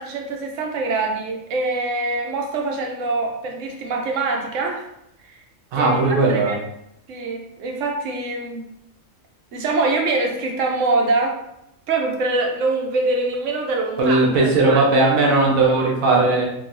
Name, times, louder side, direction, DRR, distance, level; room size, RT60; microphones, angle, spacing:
voice 1, 0.0-4.8 5.3-5.4 5.7-6.0 6.3-6.6 7.1-8.7 9.5-11.4 11.9-14.8, right 3 dB, 70° right, 1 dB, 1.0 m, -24 dB
voice 2, 5.7-6.5 14.0-16.5, right 3 dB, 90° right, -3 dB, 1.3 m, -17 dB
3.9 x 2.3 x 2.5 m, 0.80 s
omnidirectional pair, 1.4 m